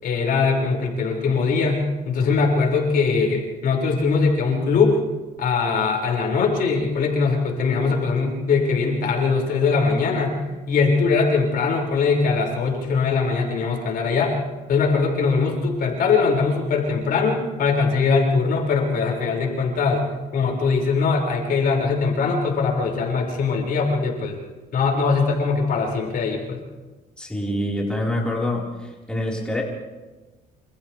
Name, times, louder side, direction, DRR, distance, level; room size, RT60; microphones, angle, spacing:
voice 1, 0.0-5.0 5.4-10.4 10.7-14.4 14.7-20.0 20.3-24.4 24.7-26.6, left 4 dB, 60° left, -1 dB, 6.2 m, -21 dB
voice 2, 27.2-29.6, left 1 dB, 5° left, -3 dB, 4.8 m, -26 dB
29.0 x 28.0 x 3.5 m, 1.2 s
cardioid pair, 110°, 17 cm